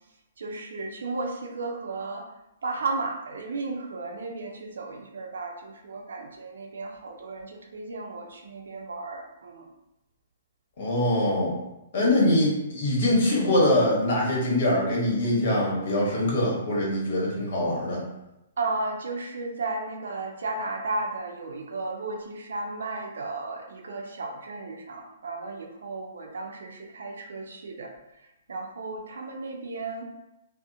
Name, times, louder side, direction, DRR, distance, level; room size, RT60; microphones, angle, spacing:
voice 1, 0.4-2.3 2.6-9.7 18.6-27.9 28.5-30.0, right 3 dB, 80° right, 2 dB, 0.5 m, -34 dB
voice 2, 10.8-11.6 11.9-18.0, left 1 dB, 60° left, -4 dB, 1.1 m, -23 dB
2.7 x 2.0 x 2.5 m, 0.90 s
hypercardioid pair, 140°, 0 cm